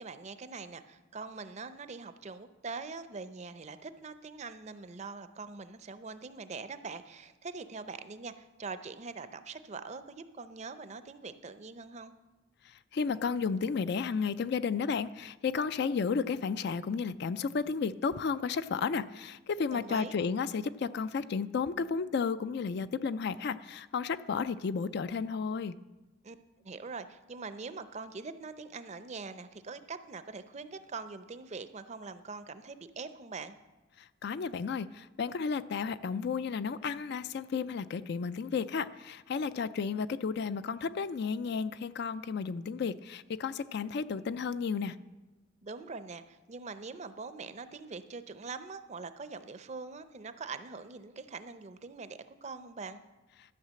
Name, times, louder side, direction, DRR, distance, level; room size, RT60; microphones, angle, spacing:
voice 1, 0.0-12.1 19.7-20.1 26.2-26.4 26.6-33.6 45.6-53.0, right 4 dB, 35° right, 12 dB, 0.5 m, -43 dB
voice 2, 12.9-25.8 34.0-45.0, left 5 dB, 55° left, 14 dB, 0.4 m, -33 dB
12.5 x 5.7 x 7.5 m, 1.1 s
head